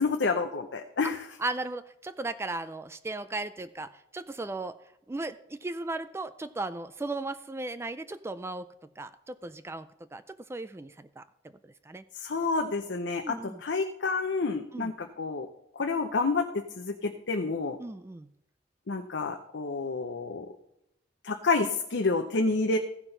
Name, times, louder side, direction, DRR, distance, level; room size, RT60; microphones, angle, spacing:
voice 1, 0.0-1.3 12.1-15.5 15.7-17.8 18.9-20.5 21.2-22.8, left 3 dB, 85° left, 4 dB, 0.7 m, -29 dB
voice 2, 1.4-4.8 5.1-8.7 9.0-11.2 11.8-12.0 13.2-13.6 14.7-14.9 17.8-18.3, right 2 dB, 15° right, 12 dB, 0.3 m, -36 dB
15.0 x 5.8 x 4.0 m, 0.81 s
head